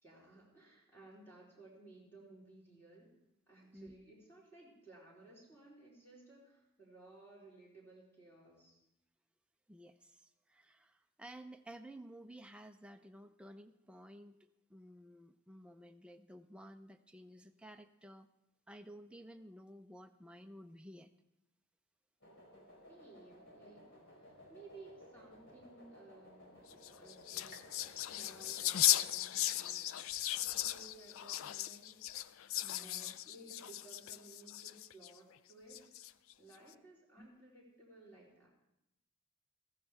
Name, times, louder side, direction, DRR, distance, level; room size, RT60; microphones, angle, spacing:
voice 1, 0.0-3.1 3.5-8.8 22.9-26.7 26.9-30.0 30.4-32.0 32.7-35.9 36.4-38.5, right 2 dB, 10° left, -5 dB, 3.7 m, -58 dB
voice 2, 9.7-14.4 14.7-18.3 18.7-21.1 28.1-28.3 32.6-33.2 37.2-37.3, right 1 dB, 5° right, 6 dB, 0.5 m, -54 dB
sound 1, 22.2-29.1, left 1 dB, 60° left, 4.3 m, -58 dB
sound 2, 26.7-35.1 35.7-36.3, left 13 dB, 80° left, 0.4 m, -36 dB
sound 3, 27.5-29.2 29.7-30.3 30.8-30.9 31.8-31.9, equal, 45° left, 1.3 m, -64 dB
15.0 x 14.5 x 3.5 m, 0.85 s
head